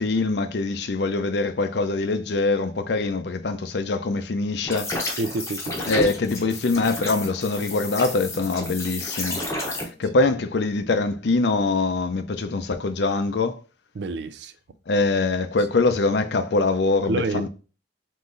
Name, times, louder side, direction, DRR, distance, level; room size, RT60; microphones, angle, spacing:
voice 1, 0.0-5.2 5.9-9.4 9.8-13.6 14.9-17.5, left 3 dB, 65° left, 0.5 m, -23 dB
sound 1, 4.6-9.8, left 1 dB, 15° left, 0.8 m, -31 dB
voice 2, 5.2-5.7 13.9-14.5 17.1-17.5, right 3 dB, 65° right, 0.4 m, -28 dB
3.8 x 3.1 x 3.8 m
head